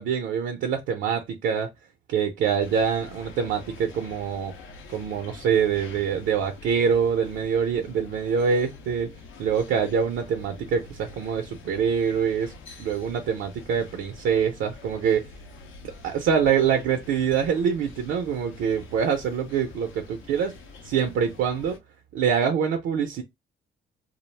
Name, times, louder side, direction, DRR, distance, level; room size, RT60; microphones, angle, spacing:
voice 1, 0.0-1.7 2.1-4.5 4.9-9.1 9.4-12.5 12.8-15.2 16.0-20.5 20.8-21.8 22.1-23.2, right 7 dB, 80° right, 0.5 m, -25 dB
sound 1, 2.6-21.8, left 3 dB, 90° left, 0.6 m, -46 dB
2.4 x 2.0 x 3.1 m
cardioid pair, 90°, 20 cm